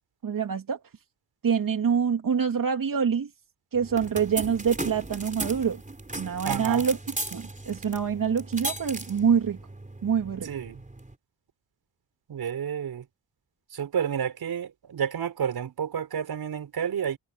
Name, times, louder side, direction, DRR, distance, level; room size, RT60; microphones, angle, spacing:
voice 1, 0.2-0.8 1.4-3.3 3.7-5.8 6.2-9.6 10.0-10.5, right 7 dB, 60° right, 2.7 m, -26 dB
sound 1, 3.7-11.1, right 2 dB, 20° right, 4.3 m, -37 dB
voice 2, 6.4-6.9 10.5-10.8 12.3-13.0 13.7-17.2, right 8 dB, 75° right, 4.3 m, -30 dB
supercardioid pair, 50°, 38 cm